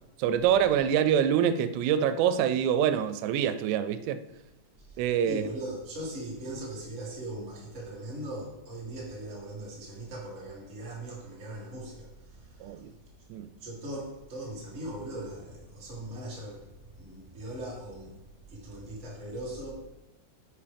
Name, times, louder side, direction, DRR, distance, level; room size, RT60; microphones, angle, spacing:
voice 1, 0.2-4.2 5.0-5.5 12.6-12.9 13.3-13.5, right 9 dB, 90° right, 2.8 m, -25 dB
voice 2, 5.2-12.1 12.4-12.7 13.6-16.7 16.9-18.1 18.5-19.7, right 1 dB, 25° right, 2.1 m, -39 dB
11.5 x 5.5 x 3.4 m
omnidirectional pair, 4.9 m